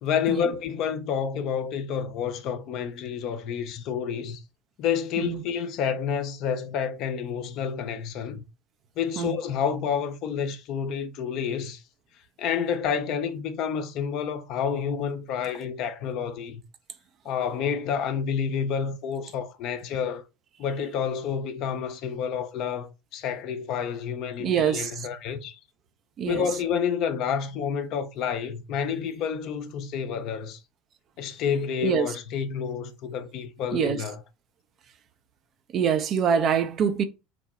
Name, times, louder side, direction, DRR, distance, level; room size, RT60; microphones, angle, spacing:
voice 1, 0.0-4.4 4.8-8.4 9.0-11.8 12.4-16.6 17.2-20.2 20.6-25.6 26.2-30.6 31.2-34.2, left 7 dB, 50° left, 0.5 m, -29 dB
voice 2, 24.4-24.9 26.2-26.4 31.8-32.1 33.7-34.0 35.7-37.0, right 7 dB, 40° right, 0.5 m, -24 dB
3.0 x 2.1 x 3.9 m
figure-of-eight pair, 70°, 0 cm